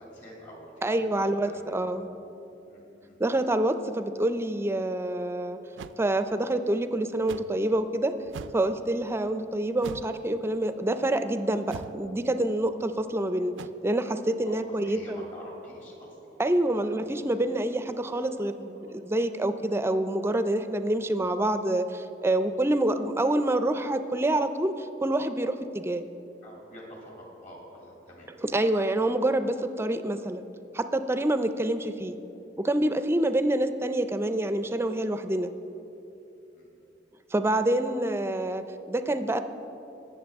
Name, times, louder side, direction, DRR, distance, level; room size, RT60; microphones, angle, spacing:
voice 1, 0.0-2.0 2.7-3.2 14.4-17.2 17.7-18.2 18.7-19.0 26.4-28.3 36.5-36.7, equal, 45° left, -3 dB, 2.8 m, -48 dB
voice 2, 0.8-2.1 3.2-5.6 6.0-8.1 8.5-13.5 13.8-15.3 16.4-26.0 28.5-30.4 30.7-32.2 32.6-35.5 37.3-39.4, right 1 dB, 15° right, 10 dB, 0.4 m, -27 dB
sound 1, 5.8-6.0 7.3-7.6 8.3-8.7 9.8-10.2 11.7-12.0 13.6-13.7, right 5 dB, 85° right, 0.3 m, -41 dB
19.5 x 7.1 x 3.5 m, 3.0 s
head